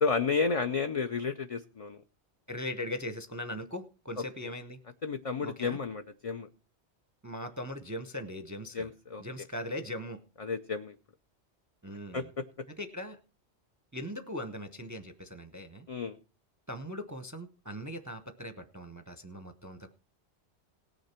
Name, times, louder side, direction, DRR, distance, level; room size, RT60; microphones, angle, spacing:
voice 1, 0.0-2.0 5.0-6.5 8.7-9.2 10.4-11.0 12.1-12.4 15.9-16.2, left 5 dB, 40° left, 7 dB, 0.6 m, -31 dB
voice 2, 2.5-4.8 5.4-5.8 7.2-8.9 9.2-10.2 11.8-12.3 12.8-13.2 13.9-15.9 16.7-19.9, left 1 dB, 20° right, 10 dB, 0.6 m, -40 dB
18.0 x 6.7 x 4.3 m, 0.34 s
omnidirectional pair, 1.1 m